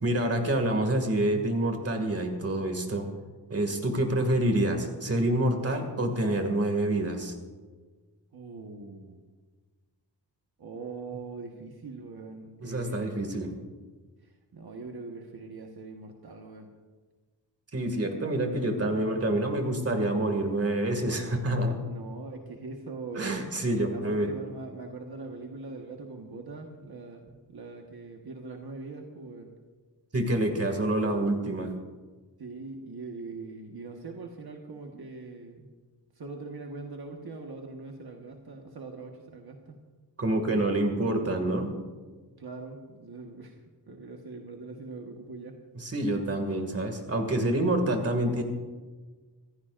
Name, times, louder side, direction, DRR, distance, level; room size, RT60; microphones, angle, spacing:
voice 1, 0.0-3.1 3.5-7.3 12.6-13.5 17.7-21.8 23.1-24.3 30.1-31.7 40.2-41.7 45.8-48.4, right 1 dB, 35° right, 4 dB, 2.2 m, -27 dB
voice 2, 8.3-9.2 10.6-13.3 14.2-16.7 21.8-29.5 32.4-35.7 36.1-39.8 42.4-43.6 43.9-45.6, right 3 dB, 60° right, 1 dB, 1.4 m, -42 dB
25.5 x 15.0 x 2.5 m, 1.4 s
wide cardioid pair, 135°, 41 cm